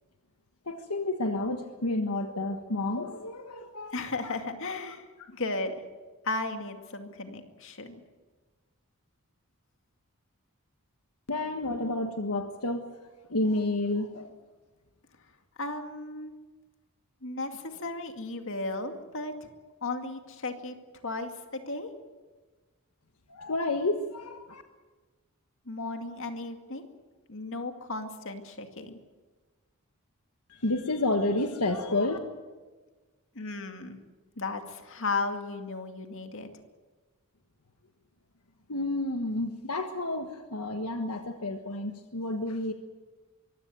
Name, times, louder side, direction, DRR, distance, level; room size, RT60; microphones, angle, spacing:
voice 1, 0.7-3.9 4.2-4.3 5.2-5.3 11.3-12.9 13.3-14.3 23.3-24.6 30.5-32.2 38.7-42.7, left 2 dB, 85° left, 6 dB, 1.4 m, -30 dB
voice 2, 3.9-5.8 6.2-8.0 15.6-16.3 17.2-19.5 19.8-20.8 21.0-21.9 25.7-26.9 27.3-29.0 33.4-34.0 34.4-36.5, left 3 dB, 60° left, 6 dB, 2.3 m, -35 dB
24.0 x 16.0 x 9.3 m, 1.3 s
head